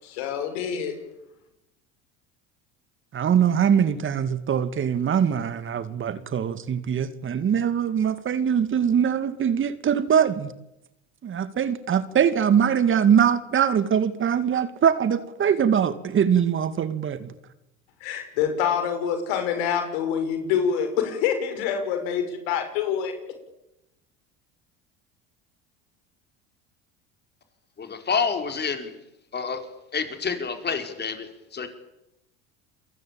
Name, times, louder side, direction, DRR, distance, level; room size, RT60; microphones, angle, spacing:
voice 1, 0.0-1.0 18.0-23.1, left 8 dB, 75° left, 6.3 m, -26 dB
voice 2, 3.1-10.5 11.2-17.3, right 8 dB, 40° right, 2.2 m, -22 dB
voice 3, 27.8-28.9 29.3-29.6 29.9-31.7, left 5 dB, 30° left, 5.5 m, -28 dB
28.5 x 22.5 x 8.9 m
hypercardioid pair, 80°, 31 cm